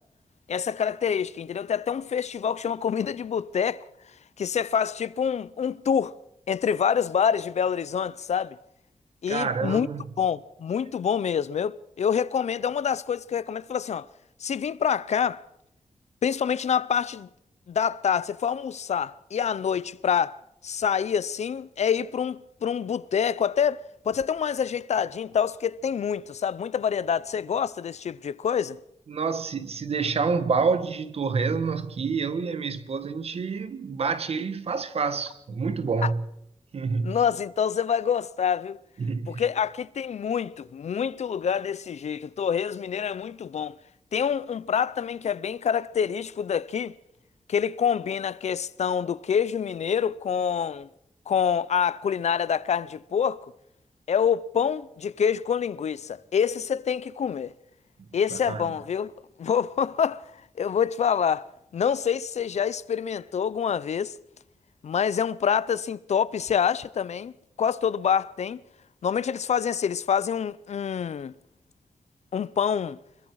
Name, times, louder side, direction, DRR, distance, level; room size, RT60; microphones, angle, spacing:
voice 1, 0.5-3.8 4.4-6.2 6.5-8.6 9.2-9.9 10.2-14.1 14.4-15.4 16.2-17.3 17.7-28.8 36.0-36.1 37.0-38.8 39.3-43.8 44.1-47.0 47.5-50.9 51.3-53.5 54.1-57.5 58.1-59.1 59.4-60.3 60.6-64.1 64.8-67.3 67.6-68.6 69.0-71.3 72.3-73.0, left 7 dB, 75° left, 0.7 m, -26 dB
voice 2, 9.3-10.0 29.1-36.2 36.7-37.2 39.0-39.4 58.5-58.7, right 5 dB, 60° right, 1.5 m, -27 dB
25.5 x 22.5 x 4.8 m
wide cardioid pair, 180°, 12 cm